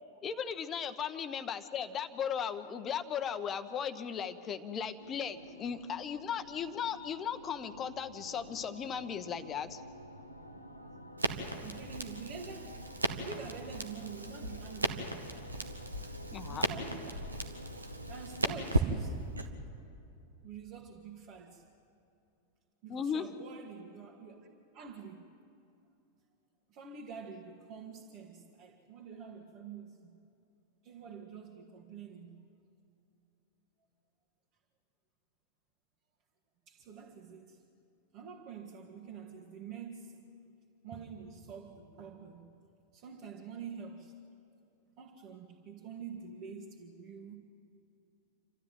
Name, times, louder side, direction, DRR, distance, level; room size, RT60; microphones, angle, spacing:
voice 1, 0.2-9.8 16.3-16.7 22.9-23.3, left 7 dB, 25° left, 1.0 m, -37 dB
sound 1, 5.0-18.6, equal, 90° left, 1.0 m, -50 dB
Crackle, 11.2-19.5, right 2 dB, 80° right, 1.4 m, -36 dB
voice 2, 11.6-12.8 13.2-15.2 16.4-17.3 17.8-19.2 20.4-21.6 22.8-24.4 24.7-25.2 26.7-30.1 30.8-32.5 36.7-37.6 38.1-40.3 40.8-42.5 42.9-44.2 45.0-47.4, right 6 dB, 40° right, 2.1 m, -47 dB
28.0 x 13.0 x 9.3 m
figure-of-eight pair, 90°, 0 cm